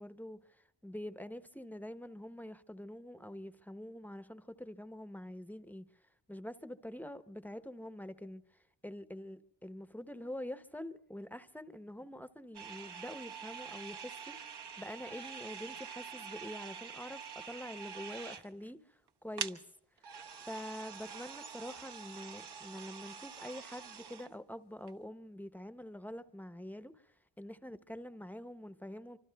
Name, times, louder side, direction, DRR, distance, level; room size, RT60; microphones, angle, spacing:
voice 1, 0.0-5.9 6.3-8.4 8.8-19.6 20.4-29.2, equal, 5° left, 0.7 m, -46 dB
sound 1, 12.5-18.7 19.1-19.2 19.3-19.5 20.0-24.3 24.9-25.0, right 6 dB, 65° right, 1.1 m, -46 dB
25.5 x 25.0 x 2.3 m
cardioid pair, 75°, 43 cm